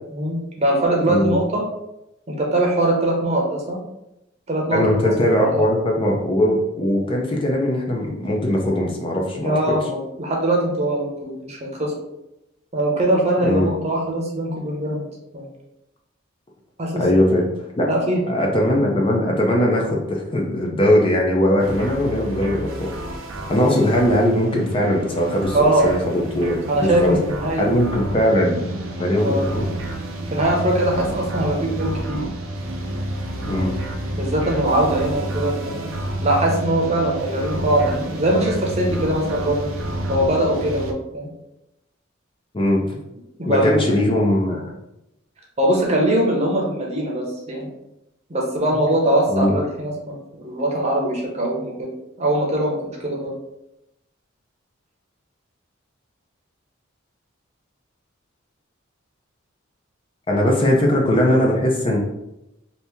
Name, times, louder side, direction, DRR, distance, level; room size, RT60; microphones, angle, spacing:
voice 1, 0.1-1.6 2.3-3.8 4.5-4.8 5.4-5.6 9.4-11.9 12.7-15.1 15.3-15.4 16.8-17.0 17.8-18.2 25.5-25.9 26.7-28.0 29.2-29.5 30.3-32.3 34.1-35.9 36.2-39.7 40.1-41.3 43.4-44.1 45.6-47.7 48.3-51.9 52.2-53.3, right 1 dB, 30° right, -1 dB, 0.8 m, -21 dB
voice 2, 1.0-1.4 4.7-9.7 13.4-13.7 17.0-17.4 17.8-17.9 18.3-22.9 23.5-27.2 27.6-28.7 29.0-29.7 33.5-33.8 42.5-43.0 43.4-44.6 49.3-49.5 60.3-62.0, left 1 dB, 25° left, -1 dB, 0.5 m, -20 dB
sound 1, 21.6-40.9, right 1 dB, 80° right, 0.5 m, -30 dB
2.9 x 2.7 x 3.5 m, 0.87 s
head